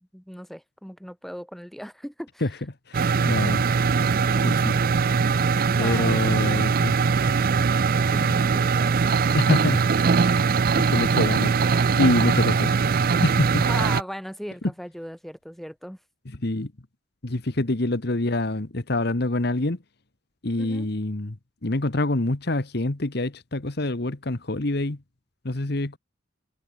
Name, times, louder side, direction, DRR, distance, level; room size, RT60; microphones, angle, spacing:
voice 1, 0.1-2.5 5.8-6.6 7.1-7.3 7.9-8.9 9.5-9.6 13.7-16.0 20.6-20.9, equal, ahead, 3.1 m, -38 dB
voice 2, 2.9-3.6 4.4-4.7 5.8-6.9 8.1-8.2 9.3-9.8 10.1-10.3 10.8-11.5 12.0-12.7 13.2-13.6 16.4-16.7 17.2-19.8 20.4-21.3 21.6-25.0 25.4-26.0, left 2 dB, 55° left, 1.3 m, -25 dB
sound 1, 2.9-14.0, right 5 dB, 50° right, 0.5 m, -21 dB
head